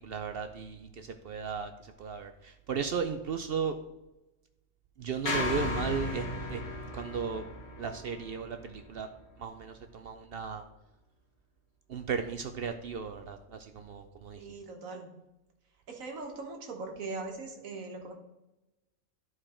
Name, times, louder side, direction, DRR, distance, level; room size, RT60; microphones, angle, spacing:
voice 1, 0.0-3.7 5.0-7.4 7.8-9.1 9.4-10.6 11.9-14.4, right 6 dB, 60° right, 7 dB, 0.6 m, -36 dB
sound 1, 5.2-9.6, left 2 dB, 55° left, 1.7 m, -36 dB
voice 2, 14.4-15.1 15.9-18.1, right 3 dB, 90° right, 2 dB, 1.7 m, -40 dB
11.0 x 4.7 x 4.3 m, 0.96 s
omnidirectional pair, 1.4 m